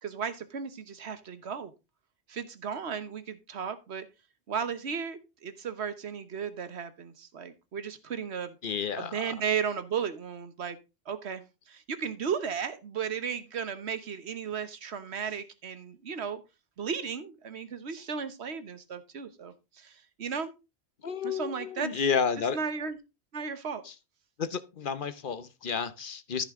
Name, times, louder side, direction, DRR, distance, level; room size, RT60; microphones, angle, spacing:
voice 1, 0.0-1.7 2.3-4.1 4.5-8.5 9.0-10.8 11.1-16.4 16.8-20.5 21.2-21.9 22.5-23.0 23.3-23.8, right 6 dB, 75° right, 1.4 m, -35 dB
voice 2, 8.6-9.3 21.0-22.6 23.8-23.9 24.4-26.4, left 6 dB, 55° left, 1.0 m, -31 dB
14.0 x 5.7 x 3.7 m
omnidirectional pair, 1.1 m